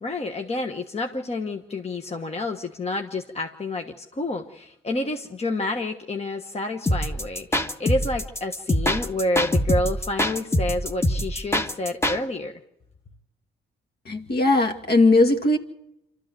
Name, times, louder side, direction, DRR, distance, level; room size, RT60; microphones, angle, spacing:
voice 1, 0.0-12.5, left 2 dB, 30° left, 4 dB, 1.3 m, -29 dB
sound 1, 6.9-12.2, equal, 15° left, 1.4 m, -24 dB
voice 2, 14.1-15.6, left 2 dB, 55° left, 4 dB, 2.3 m, -19 dB
26.5 x 13.0 x 7.7 m, 0.84 s
supercardioid pair, 65°, 20 cm